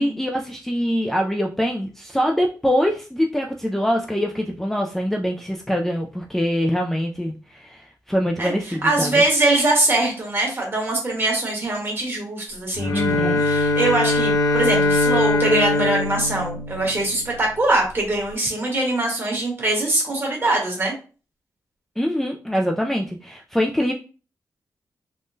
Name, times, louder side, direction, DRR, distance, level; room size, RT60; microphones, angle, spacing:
voice 1, 0.0-9.2 12.9-13.4 22.0-23.9, equal, 5° left, 1 dB, 0.3 m, -24 dB
voice 2, 8.4-12.9 13.2-20.9, right 2 dB, 35° right, -1 dB, 1.3 m, -22 dB
Bowed string instrument, 12.8-17.4, left 2 dB, 60° left, 0.6 m, -21 dB
3.5 x 2.2 x 2.6 m, 0.36 s
wide cardioid pair, 100°, 7 cm